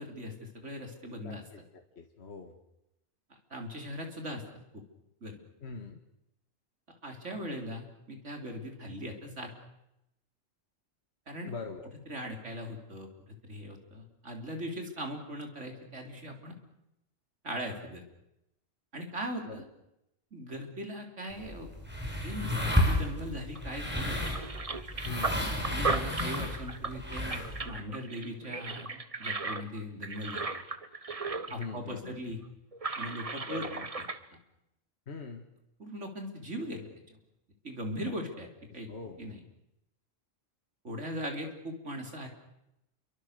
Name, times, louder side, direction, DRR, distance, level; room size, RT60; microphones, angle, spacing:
voice 1, 0.0-1.4 3.5-4.4 4.7-4.8 5.2-5.4 7.0-9.5 11.3-11.5 12.1-13.1 13.4-16.6 17.4-18.0 18.9-19.6 20.3-21.7 22.2-24.3 25.7-30.6 31.5-32.4 33.0-33.7 34.0-34.1 35.8-37.2 37.6-38.9 39.2-39.4 40.8-42.3, equal, 65° right, 3 dB, 4.1 m, -39 dB
voice 2, 1.2-1.6 2.0-2.5 5.6-6.0 11.5-11.9 19.4-19.6 25.1-25.5 31.5-32.2 33.5-33.9 35.1-35.4 38.0-38.1 38.9-39.2, left 4 dB, 55° left, 5 dB, 1.8 m, -42 dB
sound 1, 21.3-27.6, left 1 dB, 10° right, 5.7 m, -32 dB
sound 2, 23.5-23.8 24.1-31.7 32.0-32.1 32.7-34.2, right 3 dB, 30° right, 1.2 m, -36 dB
28.5 x 24.0 x 6.8 m, 0.86 s
omnidirectional pair, 1.3 m